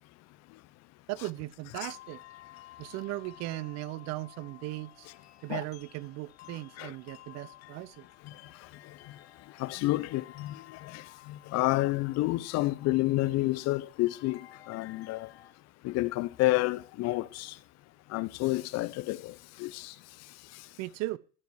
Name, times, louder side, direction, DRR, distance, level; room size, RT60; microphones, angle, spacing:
voice 1, 1.1-2.2 2.8-5.1 5.4-8.0 20.8-21.2, right 18 dB, 60° right, 0.7 m, -37 dB
sound 1, 1.7-15.5, left 14 dB, 85° left, 1.1 m, -54 dB
voice 2, 9.6-15.3 15.8-17.5 18.1-19.3 19.6-19.9, left 19 dB, 55° left, 0.7 m, -30 dB
13.5 x 4.8 x 7.1 m
supercardioid pair, 90°, 30 cm